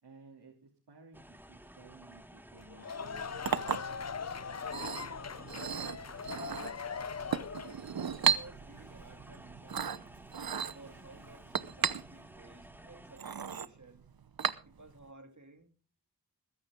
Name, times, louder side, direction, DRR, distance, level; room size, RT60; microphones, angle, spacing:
voice 1, 0.0-4.7, right 3 dB, 90° right, 2.9 m, -58 dB
sound 1, 1.1-13.2, equal, 5° right, 1.2 m, -54 dB
sound 2, 2.6-7.9, left 6 dB, 40° left, 0.6 m, -40 dB
Chink clink, 3.0-15.0, right 6 dB, 65° right, 0.9 m, -36 dB
voice 2, 7.6-10.1 10.6-14.1 14.6-15.7, right 2 dB, 45° right, 2.8 m, -55 dB
21.0 x 9.7 x 3.7 m
cardioid pair, 40°, 39 cm